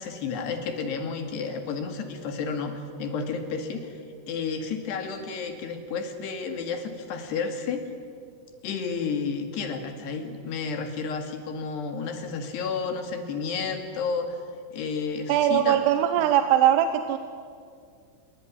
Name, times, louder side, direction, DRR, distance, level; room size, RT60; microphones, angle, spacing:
voice 1, 0.0-4.0 4.3-7.9 8.6-14.4 14.7-15.8, left 5 dB, 60° left, 6 dB, 4.0 m, -31 dB
voice 2, 15.3-17.2, right 11 dB, 90° right, 9 dB, 3.7 m, -21 dB
27.0 x 22.5 x 9.9 m, 2.2 s
omnidirectional pair, 5.8 m